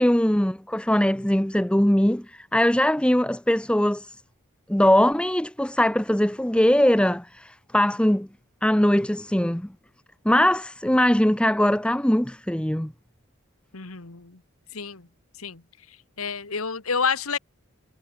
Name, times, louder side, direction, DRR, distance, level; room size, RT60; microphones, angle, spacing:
voice 1, 0.0-4.2 4.7-8.3 8.6-9.7 10.2-12.9, left 1 dB, 5° left, 0.6 m, -21 dB
voice 2, 13.7-14.4 14.7-15.1 15.4-15.6 16.2-17.4, left 5 dB, 90° left, 1.8 m, -28 dB
head